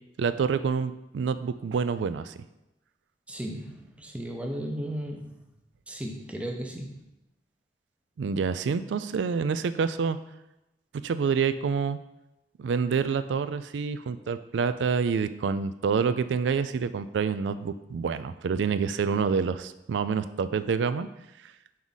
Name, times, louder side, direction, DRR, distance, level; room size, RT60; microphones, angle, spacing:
voice 1, 0.2-2.4 8.2-10.2 11.0-12.0 12.6-21.1, right 5 dB, 75° right, 12 dB, 0.3 m, -27 dB
voice 2, 3.3-5.4 5.9-7.0, equal, 5° right, 2 dB, 0.7 m, -35 dB
5.5 x 4.7 x 4.0 m, 0.93 s
head